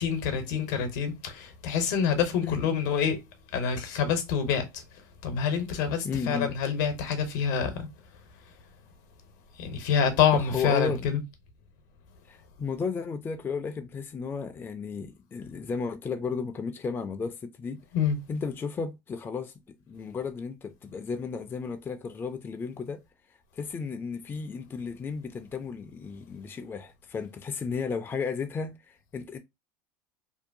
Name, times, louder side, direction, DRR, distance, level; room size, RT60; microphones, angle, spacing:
voice 1, 0.0-3.2 3.5-4.8 5.2-7.9 9.6-11.2 17.9-18.2, left 7 dB, 70° left, 0.8 m, -26 dB
voice 2, 6.0-6.5 10.3-11.1 12.3-17.8 18.3-23.0 23.5-29.4, left 5 dB, 20° left, 0.4 m, -34 dB
2.7 x 2.2 x 2.5 m
hypercardioid pair, 90°, 10 cm